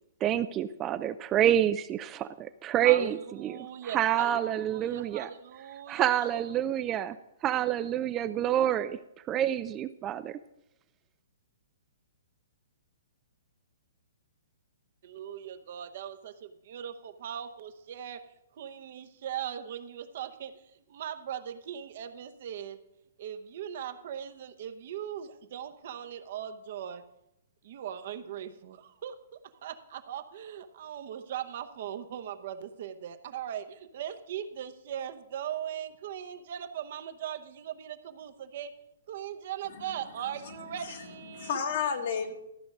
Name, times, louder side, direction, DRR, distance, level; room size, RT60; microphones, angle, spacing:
voice 1, 0.2-3.6 3.9-5.3 5.9-7.2 7.4-9.0 9.3-10.4, right 11 dB, 25° right, 12 dB, 0.3 m, -27 dB
voice 2, 2.8-6.4 15.0-18.2 18.6-22.8 23.2-27.0 27.6-38.7 39.1-41.6, right 9 dB, 55° right, 9 dB, 0.9 m, -39 dB
voice 3, 40.4-41.1 41.3-42.3, left 6 dB, 55° left, 5 dB, 1.6 m, -33 dB
13.5 x 5.2 x 6.1 m, 0.82 s
hypercardioid pair, 140°, 0 cm